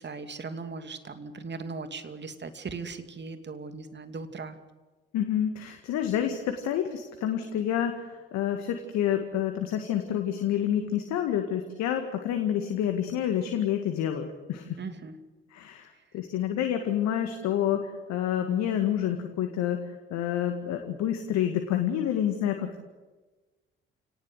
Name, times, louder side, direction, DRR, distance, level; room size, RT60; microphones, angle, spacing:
voice 1, 0.0-4.6 14.8-15.2, right 4 dB, 35° right, 8 dB, 2.7 m, -38 dB
voice 2, 5.1-14.8 15.5-22.8, left 10 dB, 65° left, 5 dB, 2.1 m, -28 dB
29.5 x 18.5 x 8.0 m, 1.3 s
hypercardioid pair, 50°, 30 cm